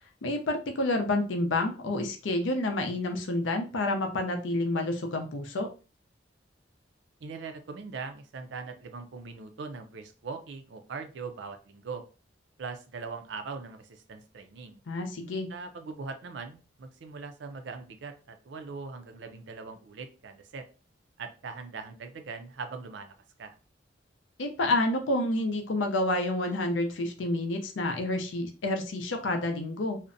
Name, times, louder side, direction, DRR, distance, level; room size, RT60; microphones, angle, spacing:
voice 1, 0.2-5.7 14.9-15.5 24.4-30.0, left 2 dB, 85° left, 5 dB, 0.5 m, -29 dB
voice 2, 7.2-12.0 12.6-14.8 15.5-20.6 21.2-23.1 23.4-23.5, right 4 dB, 70° right, 7 dB, 0.4 m, -41 dB
2.5 x 2.1 x 2.5 m, 0.34 s
head